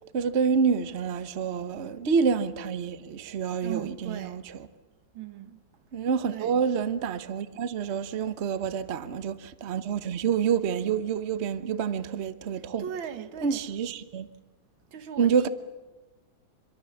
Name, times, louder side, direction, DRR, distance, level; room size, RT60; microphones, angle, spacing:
voice 1, 0.1-4.4 5.9-12.8 13.4-14.3 15.2-15.5, right 6 dB, 45° right, 1.1 m, -27 dB
voice 2, 1.5-1.9 3.6-4.4 5.1-5.6 6.3-6.5 8.6-9.0 9.7-9.8 12.8-13.6 14.9-15.5, right 9 dB, 85° right, 2.1 m, -39 dB
26.0 x 22.5 x 7.2 m
omnidirectional pair, 2.1 m